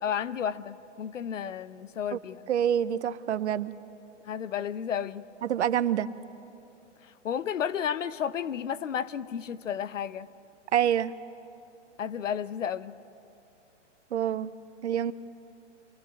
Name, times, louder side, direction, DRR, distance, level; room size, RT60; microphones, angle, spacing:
voice 1, 0.0-2.5 4.2-5.2 7.0-10.3 12.0-13.0, left 8 dB, 80° left, 15 dB, 1.0 m, -32 dB
voice 2, 2.5-3.7 5.4-6.1 10.7-11.1 14.1-14.5 14.8-15.1, right 10 dB, 65° right, 15 dB, 0.9 m, -26 dB
26.0 x 18.5 x 9.2 m, 2.8 s
hypercardioid pair, 160°, 37 cm